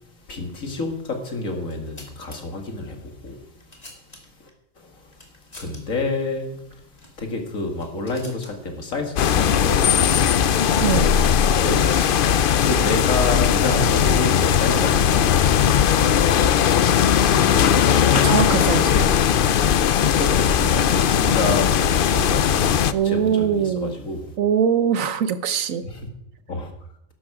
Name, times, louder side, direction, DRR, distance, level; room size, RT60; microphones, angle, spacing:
voice 1, 0.1-3.5 4.4-4.5 4.8-5.3 5.5-10.5 11.6-11.8 12.2-16.1 18.9-19.0 20.2-24.3 25.8-26.1 26.5-26.7, left 2 dB, 90° left, 2.5 m, -29 dB
sound 1, 1.6-2.4 3.3-4.5 5.1-5.8 6.1-6.2 6.9-7.2 7.6-8.5 9.7-10.3 11.3-12.5, left 1 dB, 30° left, 2.7 m, -45 dB
sound 2, 9.2-22.9, left 8 dB, 55° left, 0.6 m, -18 dB
voice 2, 10.8-11.2 18.1-19.1 21.4-21.5 22.9-24.0 24.4-25.8, right 8 dB, 85° right, 1.3 m, -22 dB
12.5 x 11.5 x 4.9 m
omnidirectional pair, 1.4 m